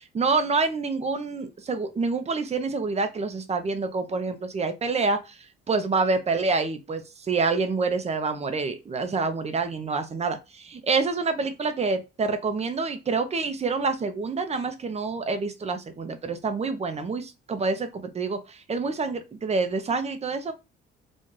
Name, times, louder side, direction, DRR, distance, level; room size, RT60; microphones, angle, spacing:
voice 1, 0.0-5.4 5.7-7.0 7.3-20.5, right 4 dB, 30° right, 0.8 m, -27 dB
4.1 x 2.4 x 3.2 m
cardioid pair, 90°, 20 cm